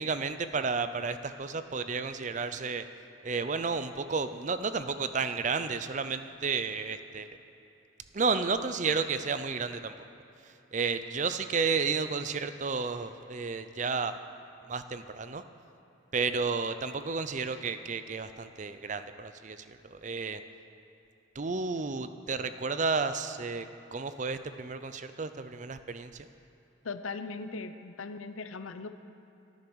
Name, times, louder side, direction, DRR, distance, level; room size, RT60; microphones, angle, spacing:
voice 1, 0.0-2.8 3.2-7.3 8.1-10.1 10.4-14.2 14.7-15.4 16.1-20.4 21.3-26.3, right 4 dB, 35° right, 11 dB, 0.5 m, -32 dB
voice 2, 26.8-28.9, left 4 dB, 85° left, 9 dB, 0.7 m, -39 dB
13.0 x 10.5 x 6.2 m, 2.9 s
head